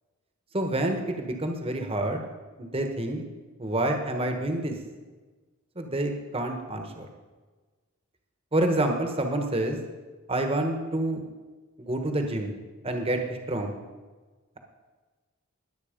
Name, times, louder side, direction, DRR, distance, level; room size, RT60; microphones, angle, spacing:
voice 1, 0.5-2.2 2.6-3.2 3.6-4.8 5.7-7.1 8.5-9.8 10.3-11.2 11.9-12.5 12.8-13.7, right 1 dB, 25° right, 4 dB, 1.3 m, -28 dB
20.5 x 8.1 x 5.2 m, 1.3 s
head